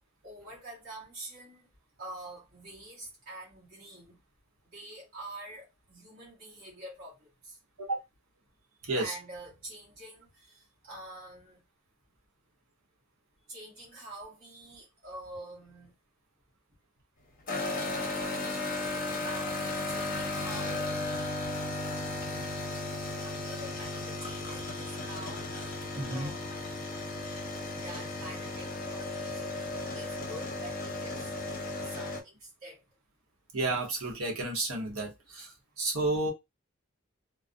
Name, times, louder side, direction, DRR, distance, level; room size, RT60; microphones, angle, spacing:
voice 1, 0.2-1.7 2.0-4.2 4.7-7.6 8.9-11.6 13.5-15.9 19.2-21.4 23.1-26.6 27.8-29.4 29.9-31.3 31.6-32.8, right 1 dB, 45° right, 1.0 m, -46 dB
voice 2, 8.8-9.1 26.0-26.3 33.5-36.3, right 2 dB, 70° right, 0.9 m, -31 dB
sound 1, 17.5-32.2, left 2 dB, 40° left, 0.6 m, -35 dB
2.4 x 2.0 x 2.5 m
head